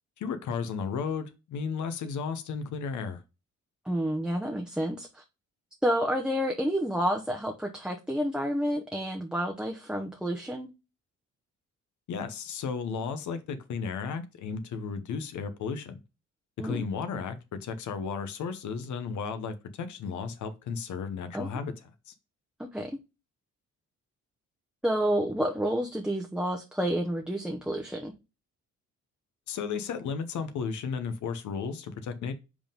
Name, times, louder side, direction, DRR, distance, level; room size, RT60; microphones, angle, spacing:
voice 1, 0.2-3.2 12.1-16.0 16.6-21.7 22.1-22.2 29.5-32.3, left 5 dB, 75° left, 1.1 m, -34 dB
voice 2, 3.8-5.2 5.8-10.7 16.6-16.8 21.3-21.5 22.6-23.0 24.8-28.1, equal, 5° right, 0.8 m, -29 dB
5.1 x 3.7 x 5.2 m
cardioid pair, 90°, 30 cm